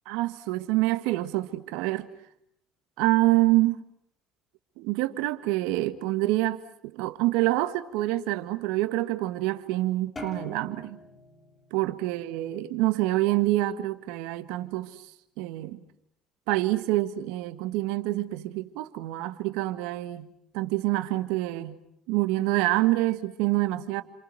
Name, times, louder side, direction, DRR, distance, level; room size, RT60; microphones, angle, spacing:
voice 1, 0.0-2.1 3.0-3.8 4.8-11.0 11.7-15.0 15.4-15.8 16.5-20.3 20.5-21.8 22.1-24.0, right 17 dB, 80° right, 1.7 m, -26 dB
sound 1, 10.2-12.7, left 2 dB, 30° left, 7.4 m, -43 dB
29.0 x 27.5 x 6.2 m
supercardioid pair, 75°, 0 cm